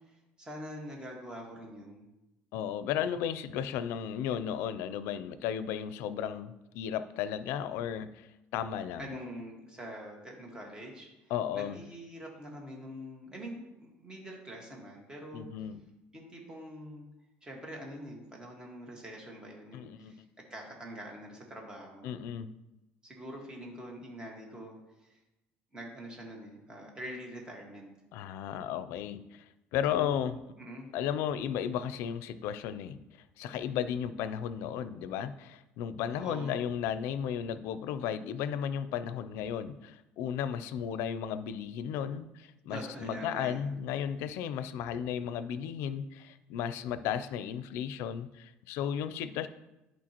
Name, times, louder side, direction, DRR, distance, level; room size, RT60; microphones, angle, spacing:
voice 1, 0.1-2.1 9.0-11.1 11.5-15.5 16.1-17.0 17.4-22.1 23.0-24.7 25.0-25.2 25.7-27.9 29.9-30.9 36.1-36.6 42.7-43.6, equal, 20° right, 0 dB, 1.7 m, -44 dB
voice 2, 2.5-9.1 11.3-11.8 15.3-15.8 19.7-20.1 22.0-22.5 28.1-29.5 29.7-30.4 30.9-33.0 33.4-49.5, left 9 dB, 75° left, 13 dB, 0.4 m, -34 dB
11.0 x 4.5 x 3.0 m, 0.96 s
cardioid pair, 135°, 4 cm